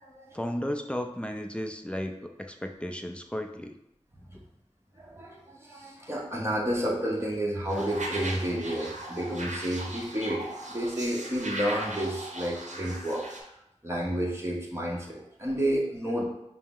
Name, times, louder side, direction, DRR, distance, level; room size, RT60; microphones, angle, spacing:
voice 1, 0.3-3.8 4.3-4.4, equal, 10° left, 5 dB, 0.4 m, -34 dB
voice 2, 5.0-13.3 13.8-16.3, right 1 dB, 20° right, -3 dB, 1.0 m, -30 dB
sound 1, 7.7-13.4, right 1 dB, 85° right, 0.6 m, -38 dB
5.3 x 2.0 x 3.6 m, 0.82 s
wide cardioid pair, 55°, 12 cm